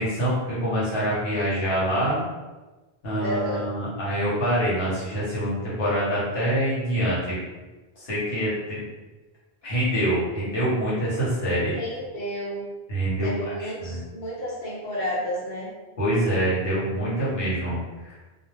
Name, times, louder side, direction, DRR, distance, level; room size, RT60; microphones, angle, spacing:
voice 1, 0.0-2.2 3.0-7.4 8.0-8.8 9.6-11.7 12.9-14.0 16.0-17.8 18.0-18.1, right 1 dB, 70° left, -8 dB, 1.1 m, -25 dB
voice 2, 3.2-3.7 11.7-12.6 13.2-15.7, equal, 50° left, -8 dB, 0.9 m, -31 dB
2.3 x 2.2 x 3.0 m, 1.2 s
omnidirectional pair, 1.1 m